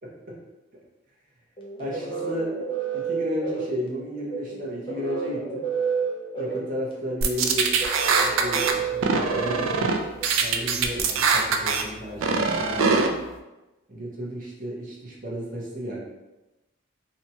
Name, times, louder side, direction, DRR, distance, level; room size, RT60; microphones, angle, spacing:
voice 1, 0.0-0.4 1.8-2.5 2.9-5.7 6.4-7.8 8.0-13.2 13.9-16.0, equal, 40° right, -5 dB, 0.7 m, -33 dB
sound 1, 1.6-10.3, right 6 dB, 25° left, 0.4 m, -31 dB
sound 2, 7.2-8.7 9.0-10.0 10.2-11.8 12.2-13.1, right 5 dB, 75° right, 0.3 m, -22 dB
2.7 x 2.3 x 2.7 m, 1.0 s
head